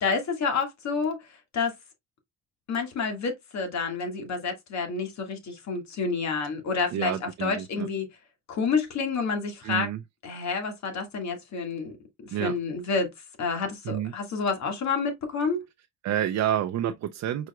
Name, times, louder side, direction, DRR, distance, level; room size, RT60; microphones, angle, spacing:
voice 1, 0.0-1.7 2.7-8.1 8.5-9.9 10.2-11.9 12.3-13.1 13.4-15.6, left 4 dB, 65° left, 1.9 m, -29 dB
voice 2, 6.9-7.9 9.6-10.0 12.3-12.5 13.8-14.1 16.0-17.5, right 11 dB, 65° right, 0.5 m, -29 dB
4.8 x 4.7 x 2.3 m
cardioid pair, 90°, 30 cm